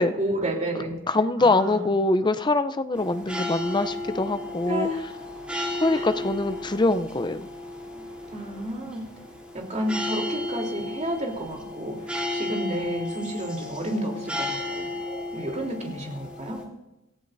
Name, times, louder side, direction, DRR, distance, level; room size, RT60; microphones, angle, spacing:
voice 1, 0.2-0.9 1.4-1.9 4.7-5.0 5.9-6.1 8.3-9.0 9.5-14.9 15.3-16.6, right 1 dB, 35° right, 0 dB, 3.4 m, -31 dB
voice 2, 1.1-4.9 5.8-7.4, left 2 dB, 20° left, 11 dB, 0.6 m, -23 dB
sound 1, 2.9-16.6, left 1 dB, 5° right, 3.3 m, -34 dB
26.5 x 15.0 x 2.7 m, 0.92 s
head